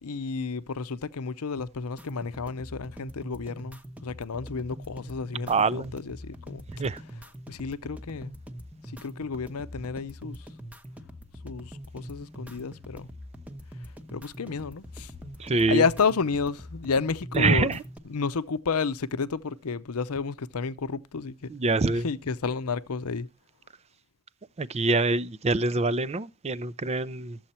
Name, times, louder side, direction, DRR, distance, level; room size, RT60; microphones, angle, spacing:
voice 1, 0.0-6.6 7.5-8.3 9.0-10.4 11.4-13.1 14.1-15.1 15.7-17.8 18.1-21.5 21.9-23.3, left 5 dB, 75° left, 0.6 m, -31 dB
sound 1, 2.0-18.0, equal, 5° right, 0.9 m, -44 dB
voice 2, 5.5-5.9 6.8-7.0 15.4-15.8 17.3-17.8 21.5-22.1 24.6-27.4, right 3 dB, 30° right, 0.5 m, -25 dB
13.5 x 7.8 x 4.3 m
head